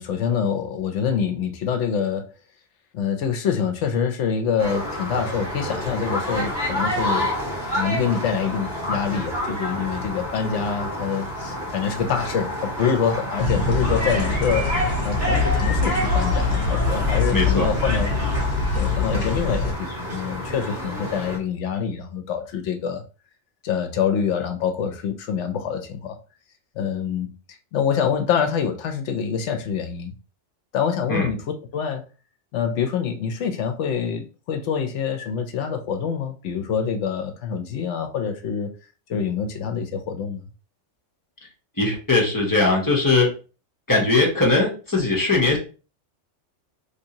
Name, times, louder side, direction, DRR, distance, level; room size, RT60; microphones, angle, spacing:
voice 1, 0.0-2.3 2.9-7.3 7.7-14.7 15.0-18.1 18.7-23.0 23.6-26.2 26.8-27.3 27.7-30.1 30.7-31.4 31.7-32.0 32.5-38.7 39.1-40.4, left 7 dB, 70° left, 0.9 m, -25 dB
sound 1, 4.6-21.4, equal, 55° right, 1.8 m, -29 dB
sound 2, 13.4-19.7, left 3 dB, 55° left, 1.2 m, -23 dB
voice 2, 17.3-17.7 31.1-31.3 41.8-43.3 43.9-45.6, left 3 dB, 20° left, 0.8 m, -20 dB
3.3 x 2.7 x 2.8 m
omnidirectional pair, 1.3 m